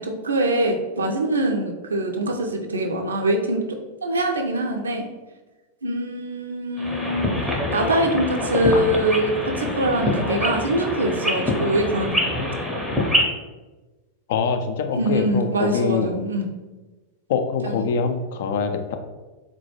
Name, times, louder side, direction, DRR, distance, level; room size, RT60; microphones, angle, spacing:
voice 1, 0.0-3.6 4.0-5.1 5.8-7.3 7.7-12.4 14.9-16.5 17.6-17.9, right 1 dB, 75° right, 3 dB, 0.4 m, -23 dB
sound 1, 6.8-13.2, left 1 dB, 5° right, 0.6 m, -25 dB
voice 2, 14.3-16.1 17.3-19.0, left 5 dB, 55° left, 6 dB, 0.3 m, -24 dB
3.9 x 2.2 x 2.9 m, 1.2 s
figure-of-eight pair, 90°, 0 cm